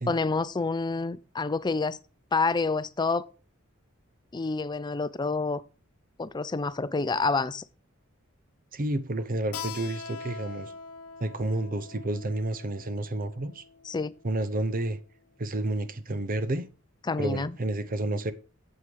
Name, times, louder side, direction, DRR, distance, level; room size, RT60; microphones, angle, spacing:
voice 1, 0.1-2.0 2.3-3.3 4.3-5.6 6.2-7.6 13.8-14.1 17.0-17.5, left 3 dB, 20° left, 0.4 m, -28 dB
voice 2, 8.7-10.7 11.2-13.6 14.2-15.0 15.4-16.6 17.2-18.3, right 2 dB, 40° right, 0.7 m, -30 dB
Keyboard (musical), 9.5-14.8, left 5 dB, 90° left, 0.8 m, -43 dB
8.1 x 8.0 x 3.5 m
head